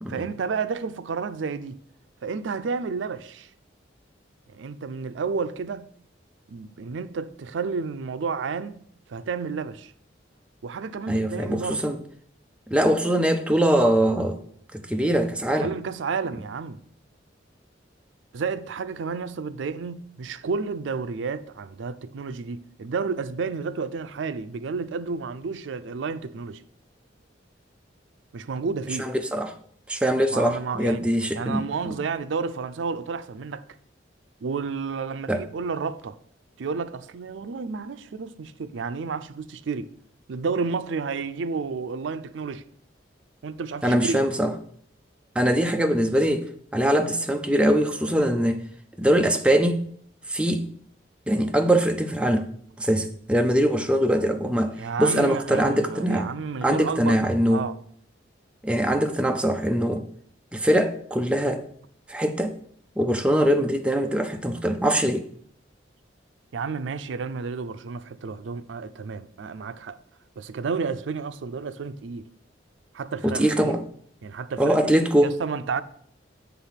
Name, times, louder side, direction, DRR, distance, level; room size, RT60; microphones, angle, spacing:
voice 1, 0.1-1.8 2.2-3.5 4.5-5.9 6.5-8.8 9.1-9.9 10.6-11.8 15.6-16.8 18.3-26.6 28.3-29.1 30.3-31.0 31.3-33.6 34.4-36.2 36.6-39.9 40.3-42.6 43.4-44.2 54.7-57.2 57.5-57.8 66.5-70.0 70.4-72.3 72.9-73.7 74.2-74.8 75.2-75.8, right 5 dB, 80° right, 0.4 m, -31 dB
voice 2, 11.1-12.0 12.7-14.4 14.9-15.7 29.0-29.5 29.9-31.6 35.3-35.4 43.8-44.5 45.4-46.5 46.7-48.6 49.0-49.8 50.3-50.7 51.3-52.5 52.8-56.3 56.6-57.7 58.6-60.0 60.5-61.7 62.1-62.5 63.0-65.2 73.2-73.8 74.6-75.4, right 1 dB, 5° right, 0.5 m, -22 dB
7.6 x 3.5 x 5.7 m
head